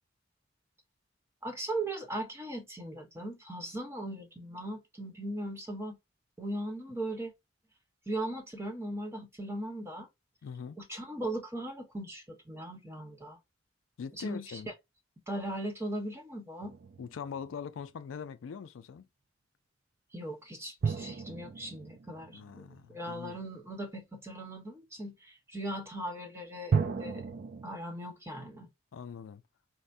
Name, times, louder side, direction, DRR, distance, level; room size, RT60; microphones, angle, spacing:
voice 1, 1.4-6.0 6.4-7.3 8.1-10.1 10.8-13.4 14.1-14.4 15.3-16.7 20.1-27.2 27.6-28.7, right 1 dB, 15° right, 1.0 m, -38 dB
voice 2, 10.4-10.8 14.0-14.7 17.0-19.1 22.3-23.4 28.9-29.4, left 6 dB, 80° left, 0.4 m, -42 dB
sound 1, 16.6-18.0 20.8-23.4 26.7-27.7, right 5 dB, 45° right, 0.4 m, -35 dB
4.3 x 2.1 x 2.4 m
head